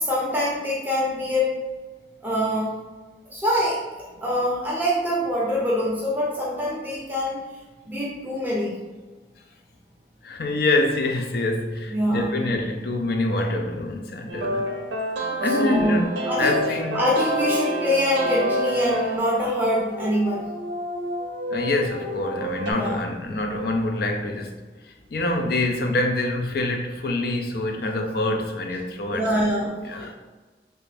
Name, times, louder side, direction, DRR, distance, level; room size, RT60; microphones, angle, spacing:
voice 1, 0.0-1.5 2.2-2.7 3.3-3.8 4.1-7.4 7.9-8.8 11.9-12.3 15.4-16.6 16.9-20.6 22.7-23.0 29.1-29.9, equal, 10° right, 0.6 m, -24 dB
voice 2, 10.2-14.7 15.4-16.1 16.4-17.0 21.5-24.6 24.8-29.3 29.9-30.1, left 2 dB, 60° left, 0.4 m, -25 dB
sound 1, 14.3-22.7, right 1 dB, 70° right, 0.5 m, -28 dB
3.2 x 2.5 x 3.3 m
head